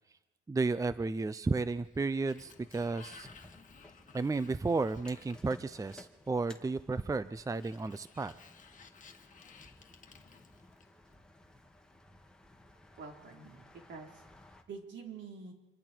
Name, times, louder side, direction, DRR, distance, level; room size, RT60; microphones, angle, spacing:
voice 1, 0.5-3.3 4.1-8.3, right 3 dB, 15° right, 14 dB, 0.6 m, -33 dB
Sliding door, 1.7-6.3 7.4-11.1, left 5 dB, 40° left, 1.8 m, -57 dB
sound 1, 2.4-14.6, left 1 dB, 5° left, 2.2 m, -58 dB
voice 2, 13.0-14.2 14.7-15.5, right 5 dB, 70° right, 1 dB, 4.2 m, -47 dB
27.0 x 24.0 x 4.6 m, 1.1 s
cardioid pair, 90°, 20 cm